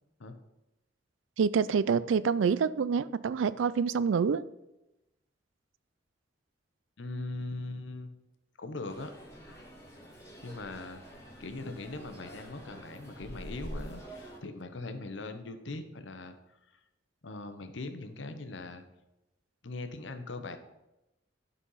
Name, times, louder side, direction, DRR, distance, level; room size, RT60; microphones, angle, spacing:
voice 1, 1.4-4.4, right 6 dB, 90° right, 0.4 m, -27 dB
voice 2, 7.0-8.1 8.6-9.1 10.4-11.0 11.4-16.4 17.2-18.8 19.6-20.6, left 2 dB, 80° left, 0.9 m, -40 dB
sound 1, 8.9-14.4, equal, 15° left, 1.8 m, -46 dB
11.5 x 4.2 x 5.6 m
head